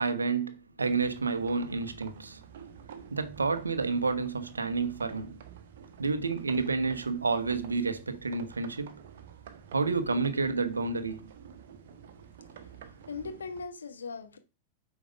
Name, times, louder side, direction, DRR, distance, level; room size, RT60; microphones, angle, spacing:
voice 1, 0.0-2.4 3.1-5.4 6.0-9.0 9.7-11.3, right 4 dB, 75° right, 0.9 m, -30 dB
sound 1, 0.8-13.7, right 8 dB, 55° right, 1.3 m, -50 dB
voice 2, 12.6-14.4, left 4 dB, 70° left, 1.2 m, -40 dB
8.5 x 4.6 x 5.2 m
figure-of-eight pair, 90°, 0 cm